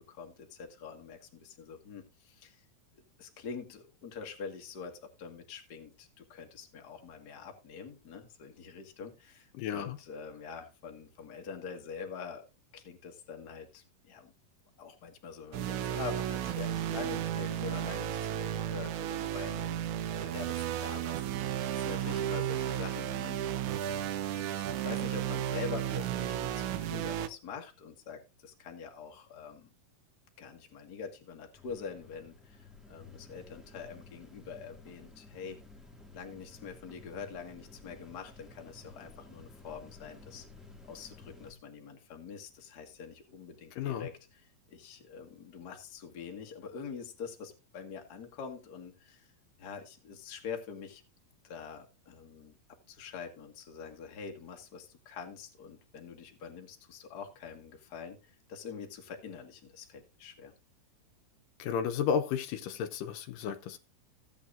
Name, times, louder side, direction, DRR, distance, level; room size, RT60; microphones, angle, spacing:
voice 1, 0.0-2.6 3.2-12.5 12.7-14.3 14.8-23.7 24.3-29.7 30.4-35.6 36.1-40.4 40.9-44.1 44.7-49.3 49.6-51.0 51.4-52.6 52.9-60.5, left 6 dB, 35° left, 1.7 m, -45 dB
voice 2, 9.5-10.0 43.8-44.1 61.6-63.8, left 7 dB, 75° left, 2.4 m, -32 dB
sound 1, 15.5-27.3, right 11 dB, 70° right, 1.9 m, -33 dB
sound 2, 31.5-41.5, left 3 dB, ahead, 0.8 m, -53 dB
16.0 x 8.5 x 2.5 m
omnidirectional pair, 4.0 m